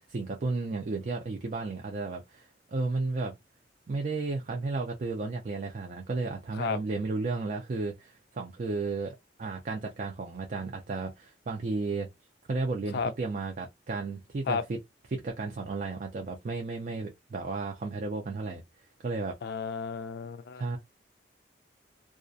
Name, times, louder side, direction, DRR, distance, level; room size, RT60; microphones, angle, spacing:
voice 1, 0.0-3.3 3.9-12.1 12.5-14.8 15.1-18.6 19.0-19.4 20.6-20.8, right 3 dB, 45° right, 0.4 m, -33 dB
voice 2, 19.4-20.8, left 5 dB, 60° left, 0.3 m, -32 dB
2.3 x 2.1 x 2.5 m
head